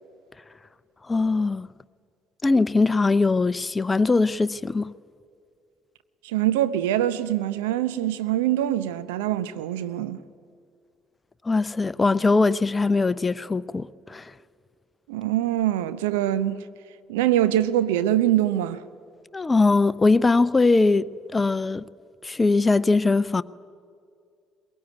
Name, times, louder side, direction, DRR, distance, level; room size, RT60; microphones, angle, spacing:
voice 1, 1.0-1.7 2.4-4.9 11.4-14.3 19.3-21.8 22.2-23.4, left 3 dB, 20° left, 0.6 m, -21 dB
voice 2, 6.2-10.2 15.1-16.6 17.1-18.8, right 12 dB, 70° right, 0.8 m, -24 dB
22.0 x 21.5 x 9.4 m
figure-of-eight pair, 50°, 0 cm